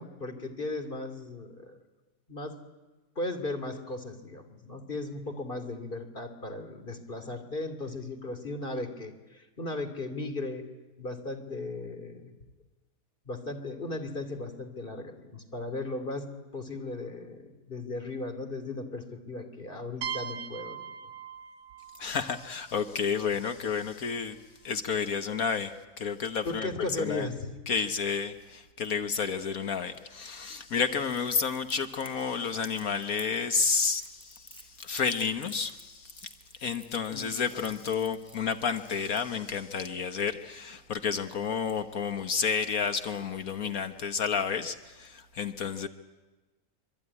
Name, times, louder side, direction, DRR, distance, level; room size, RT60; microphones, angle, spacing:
voice 1, 0.0-1.8 2.3-2.5 3.2-10.6 11.0-12.3 13.2-16.3 16.5-20.8 26.4-27.5 37.1-37.7, left 2 dB, 30° left, 8 dB, 2.9 m, -36 dB
sound 1, 20.0-23.6, right 7 dB, 85° right, 1.7 m, -41 dB
voice 2, 22.0-24.4 24.6-27.3 27.7-36.3 36.6-45.9, left 6 dB, 60° left, 9 dB, 1.5 m, -31 dB
Crackle, 31.1-39.6, equal, 5° left, 3.5 m, -52 dB
25.5 x 24.0 x 9.8 m, 1.2 s
omnidirectional pair, 1.7 m